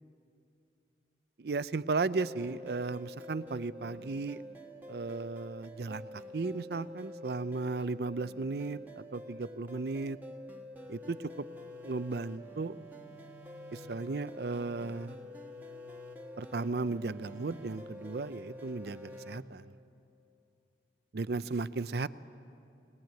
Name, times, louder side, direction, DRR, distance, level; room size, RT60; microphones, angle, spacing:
voice 1, 1.4-4.4 4.9-6.1 6.3-10.2 10.9-11.5 11.8-12.7 13.7-15.1 16.4-19.7 21.1-22.1, right 3 dB, 60° right, 15 dB, 0.5 m, -35 dB
sound 1, 2.1-19.4, left 1 dB, 10° right, 1.4 m, -48 dB
21.0 x 19.5 x 9.1 m, 2.6 s
head